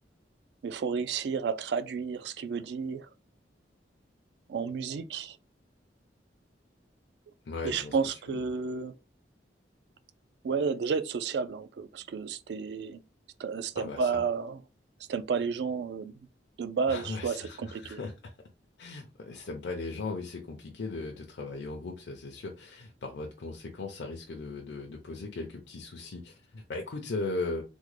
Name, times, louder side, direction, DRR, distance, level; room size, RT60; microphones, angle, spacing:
voice 1, 0.6-3.1 4.5-5.4 7.6-8.9 10.4-13.0 13.4-14.6 15.1-16.1 16.6-18.0, right 5 dB, 70° right, 0.3 m, -31 dB
voice 2, 7.4-8.0 8.3-8.4 13.8-14.2 16.9-18.1 18.8-27.6, left 3 dB, 75° left, 0.5 m, -38 dB
3.5 x 2.1 x 3.2 m
head